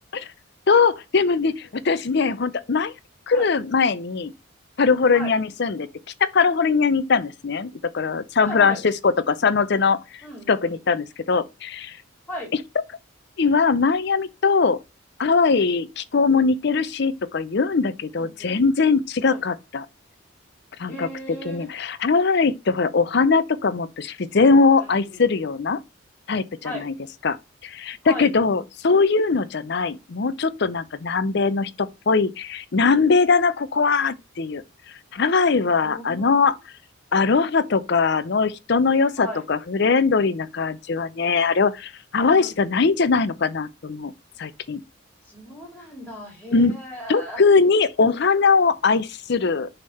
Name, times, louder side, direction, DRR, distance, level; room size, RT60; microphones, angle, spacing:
voice 1, 0.7-2.9 3.3-4.3 4.8-5.9 6.2-10.0 10.5-12.0 12.5-12.6 13.4-14.8 15.2-19.9 20.8-21.1 21.4-25.8 26.3-26.9 27.2-27.4 27.6-34.6 35.1-36.5 37.1-44.1 44.4-44.8 46.5-46.7 47.1-49.7, left 4 dB, 50° left, 0.5 m, -21 dB
voice 2, 8.4-8.8 10.2-10.8 12.3-12.5 18.1-18.6 19.3-19.4 20.9-21.7 24.8-25.2 26.6-26.9 28.0-28.3 35.8-36.4 39.2-39.4 42.4-42.5 45.3-47.4, equal, 10° left, 3.1 m, -36 dB
6.6 x 3.5 x 5.5 m
head